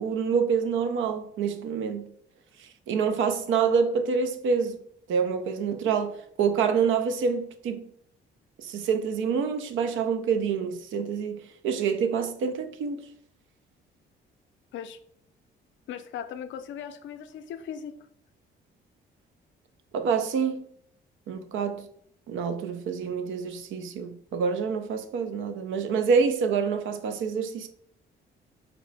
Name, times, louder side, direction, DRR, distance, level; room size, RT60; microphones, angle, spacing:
voice 1, 0.0-2.1 2.6-4.8 5.1-7.9 8.6-13.0 19.9-20.6 21.3-21.9 22.3-27.7, right 6 dB, 75° right, 0.5 m, -27 dB
voice 2, 15.9-18.0, left 8 dB, 70° left, 0.4 m, -38 dB
4.1 x 2.1 x 3.9 m
cardioid pair, 90°, 20 cm